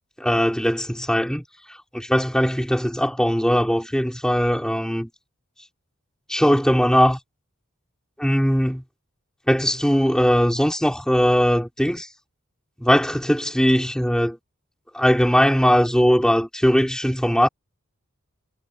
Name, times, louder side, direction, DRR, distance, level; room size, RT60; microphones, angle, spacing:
voice 1, 0.2-1.4 1.9-5.1 6.3-7.2 8.2-8.8 9.5-12.1 12.8-14.4 14.9-17.5, equal, 5° left, 5.3 m, -20 dB
head